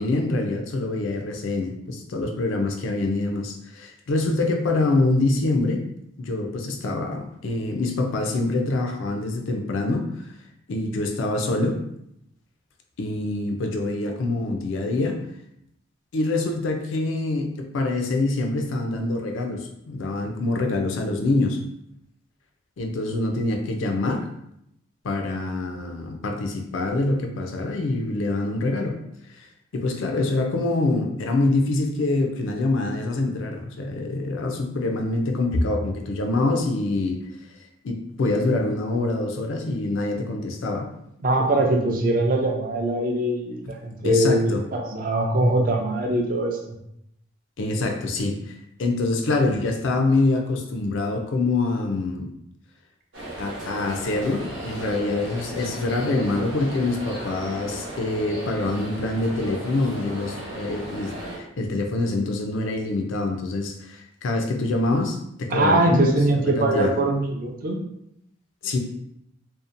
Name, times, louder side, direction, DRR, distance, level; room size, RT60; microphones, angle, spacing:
voice 1, 0.0-5.8 6.2-10.1 10.7-11.8 13.0-15.2 16.1-21.6 22.8-24.3 25.0-28.9 29.4-29.5 29.7-37.2 37.8-40.9 44.0-44.6 47.6-52.3 53.4-66.9 68.6-68.8, left 2 dB, 85° left, 4 dB, 0.4 m, -25 dB
voice 2, 41.2-46.8 65.5-67.8, right 1 dB, 45° right, 2 dB, 0.4 m, -22 dB
sound 1, 53.1-61.4, right 1 dB, 90° right, 0.9 m, -36 dB
2.7 x 2.0 x 2.5 m, 0.77 s
head